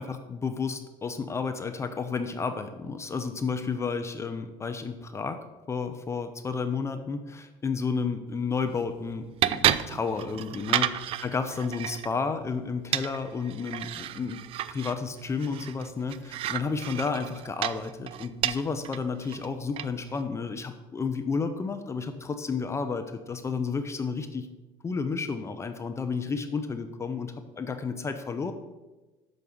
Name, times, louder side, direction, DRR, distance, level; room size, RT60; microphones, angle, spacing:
voice 1, 0.0-5.4 5.7-13.9 14.2-14.4 14.7-24.5 24.8-28.5, left 5 dB, 25° left, 8 dB, 0.6 m, -31 dB
sound 1, 8.3-20.2, right 11 dB, 50° right, 0.4 m, -33 dB
6.7 x 5.3 x 6.4 m, 1.2 s
cardioid pair, 105°, 12 cm